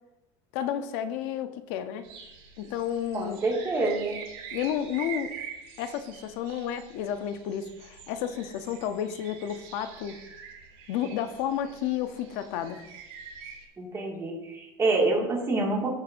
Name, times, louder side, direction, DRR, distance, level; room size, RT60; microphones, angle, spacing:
voice 1, 0.5-2.1 2.6-3.4 4.5-5.3 5.8-10.2 10.9-12.9, left 9 dB, 75° left, 10 dB, 0.7 m, -31 dB
sound 1, 2.0-13.6, right 7 dB, 75° right, 2.8 m, -45 dB
voice 2, 3.1-4.2 13.8-15.9, right 2 dB, 20° right, -1 dB, 1.9 m, -27 dB
14.5 x 6.5 x 2.6 m, 0.94 s
cardioid pair, 160°, 13 cm